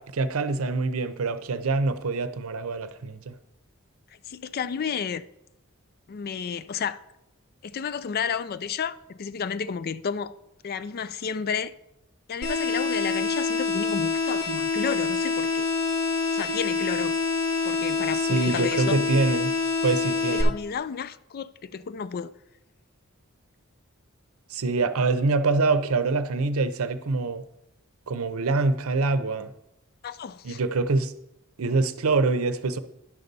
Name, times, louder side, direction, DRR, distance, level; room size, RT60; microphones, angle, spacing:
voice 1, 0.0-3.3 18.3-19.5 19.8-20.5 24.5-27.4 28.1-29.5 30.4-31.1 31.6-32.8, right 3 dB, 90° right, 0.6 m, -25 dB
voice 2, 4.3-5.2 6.1-7.0 7.6-10.3 10.6-11.7 12.3-15.7 16.3-17.1 17.6-19.0 20.3-22.3 30.0-30.6, left 6 dB, 45° left, 0.4 m, -31 dB
sound 1, 12.4-20.4, left 4 dB, 80° left, 2.8 m, -26 dB
11.0 x 4.0 x 6.8 m
head